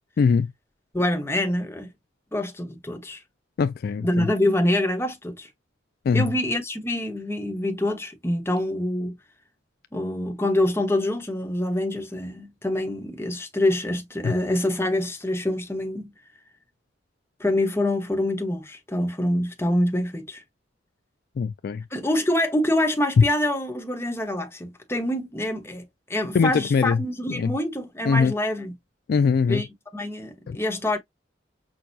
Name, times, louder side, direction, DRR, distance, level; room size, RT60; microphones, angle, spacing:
voice 1, 0.2-0.5 3.6-4.3 6.1-6.3 14.2-14.3 21.4-21.8 23.2-23.3 26.3-27.5 28.1-28.3 29.1-29.6 30.5-30.6, left 5 dB, 55° left, 0.3 m, -21 dB
voice 2, 0.9-1.9 2.3-3.2 4.0-5.5 6.1-9.2 9.9-16.1 17.4-20.4 21.9-25.8 26.1-28.7 29.5-29.7 29.9-31.0, left 1 dB, 15° left, 1.1 m, -25 dB
6.2 x 2.3 x 2.7 m
head